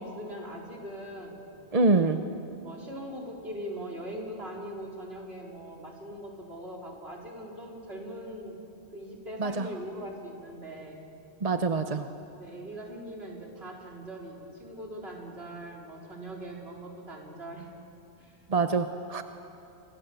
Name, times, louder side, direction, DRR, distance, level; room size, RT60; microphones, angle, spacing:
voice 1, 0.0-1.4 1.8-2.1 2.6-8.6 8.9-11.0 12.3-17.7 18.2-18.4, right 1 dB, 65° right, 0 dB, 4.4 m, -41 dB
voice 2, 1.7-2.2 9.4-9.7 11.4-12.1 18.5-19.2, right 3 dB, 35° right, 8 dB, 0.9 m, -25 dB
29.0 x 24.5 x 6.9 m, 2.8 s
omnidirectional pair, 1.1 m